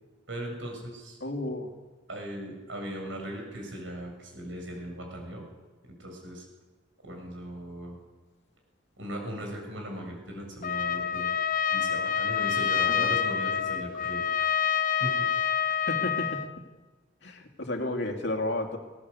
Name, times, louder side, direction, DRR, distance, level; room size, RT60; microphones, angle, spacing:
voice 1, 0.3-1.2 2.1-5.5 5.8-6.4 7.0-8.0 9.0-11.3 11.7-14.6 15.0-15.1 15.4-15.6, right 1 dB, 80° right, 2 dB, 7.2 m, -38 dB
voice 2, 1.2-1.7 12.8-13.1 15.9-16.4 17.2-18.8, left 1 dB, 65° left, 4 dB, 2.8 m, -32 dB
Trumpet, 10.6-16.5, left 7 dB, 45° left, 0.9 m, -27 dB
19.5 x 18.0 x 8.3 m, 1.3 s
head